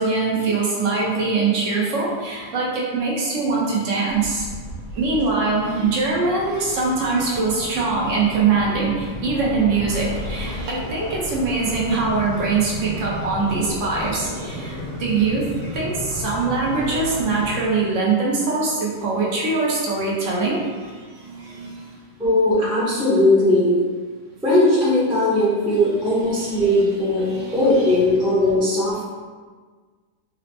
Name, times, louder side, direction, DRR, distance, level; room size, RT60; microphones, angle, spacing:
voice 1, 0.0-4.5 4.9-15.4 15.7-20.6 21.2-21.7 26.2-27.6, right 4 dB, 65° right, -4 dB, 0.8 m, -23 dB
sound 1, 4.1-17.6, equal, 80° left, 1.6 m, -33 dB
voice 2, 22.2-23.7 24.4-27.3 27.5-29.0, left 1 dB, 5° right, -10 dB, 0.5 m, -18 dB
4.0 x 2.0 x 2.8 m, 1.5 s
omnidirectional pair, 1.8 m